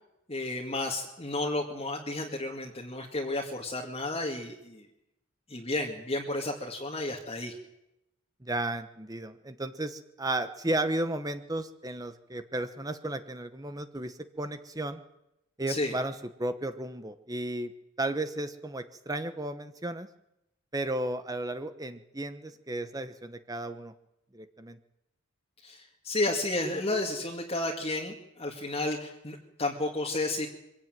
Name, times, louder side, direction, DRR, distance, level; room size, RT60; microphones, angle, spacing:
voice 1, 0.3-4.9 5.5-7.5 15.7-15.9 25.6-30.5, left 2 dB, 25° left, -1 dB, 2.1 m, -32 dB
voice 2, 8.4-15.0 15.6-17.7 18.0-20.1 20.7-23.9 24.3-24.8, right 1 dB, 15° right, 10 dB, 1.0 m, -34 dB
24.0 x 16.0 x 9.1 m, 0.88 s
head